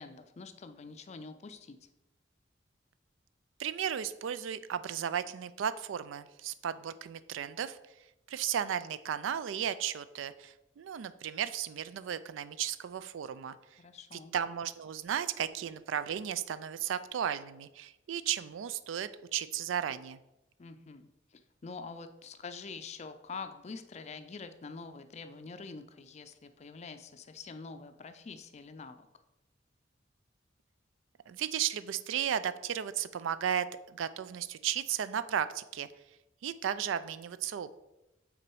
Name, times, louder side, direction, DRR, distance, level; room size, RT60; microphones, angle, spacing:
voice 1, 0.0-1.8 13.8-14.3 20.6-29.1, left 4 dB, 35° left, 9 dB, 0.4 m, -46 dB
voice 2, 3.6-7.8 8.3-13.6 14.3-20.2 31.3-35.9 36.4-37.7, right 9 dB, 85° right, 14 dB, 0.3 m, -34 dB
6.0 x 3.9 x 4.6 m, 0.95 s
head